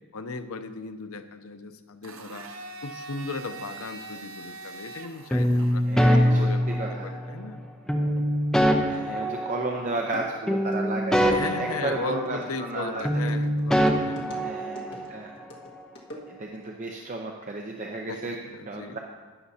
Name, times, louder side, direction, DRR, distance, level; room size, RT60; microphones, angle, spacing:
voice 1, 0.1-2.5 2.8-5.8 6.2-7.6 8.8-9.2 11.3-14.6 18.1-19.0, left 3 dB, 80° left, 9 dB, 0.7 m, -37 dB
Domestic sounds home sounds, 2.0-6.1, right 3 dB, 70° right, 0.8 m, -42 dB
sound 1, 5.3-7.3 7.9-10.2 10.5-12.8 13.0-15.1, equal, 5° left, 0.7 m, -24 dB
voice 2, 5.9-7.1 8.8-13.2 14.4-15.3 16.3-18.4 18.7-19.0, right 2 dB, 35° right, 0 dB, 0.7 m, -33 dB
sound 2, 9.5-9.6 10.0-16.7, equal, 55° left, 1.7 m, -45 dB
12.5 x 10.0 x 2.8 m, 1.4 s
head